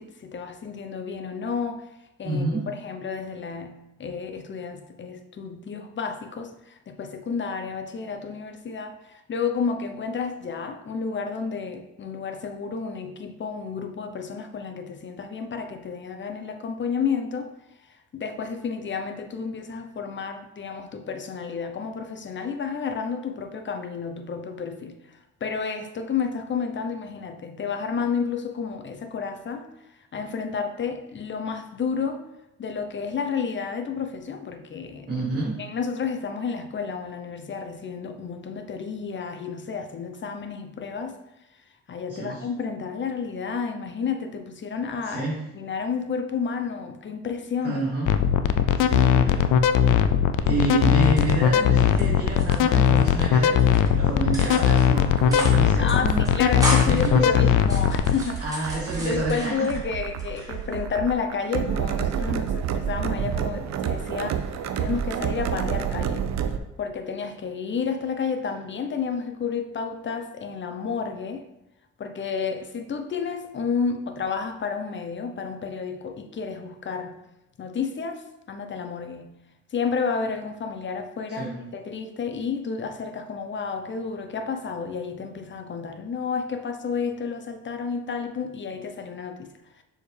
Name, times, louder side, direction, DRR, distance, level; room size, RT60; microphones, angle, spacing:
voice 1, 0.0-1.8 2.2-17.5 18.1-25.0 25.4-29.7 30.1-32.2 32.6-35.3 35.6-41.2 41.9-45.3 45.5-47.8 55.8-58.4 58.9-64.4 64.8-66.3 66.8-71.4 72.0-77.2 77.6-79.3 79.7-89.5, left 5 dB, 40° left, 0.8 m, -31 dB
voice 2, 2.2-2.7 35.1-35.6 42.1-42.4 45.1-45.4 47.6-48.1 48.8-49.5 50.4-56.2 56.8-57.4 58.4-59.7 60.3-60.5 81.3-81.6, right 2 dB, 35° right, 2.1 m, -29 dB
sound 1, 48.1-58.1, left 9 dB, 85° left, 0.5 m, -19 dB
sound 2, 51.0-52.0 52.3-53.2 53.6-53.9 54.3-54.9 55.2-55.6 55.9-56.0 56.3-57.1 57.6-59.8 60.2-60.8, equal, 10° right, 1.9 m, -33 dB
sound 3, 54.6-66.6, right 8 dB, 65° right, 0.6 m, -30 dB
6.5 x 5.0 x 3.3 m
cardioid pair, 90°, 30 cm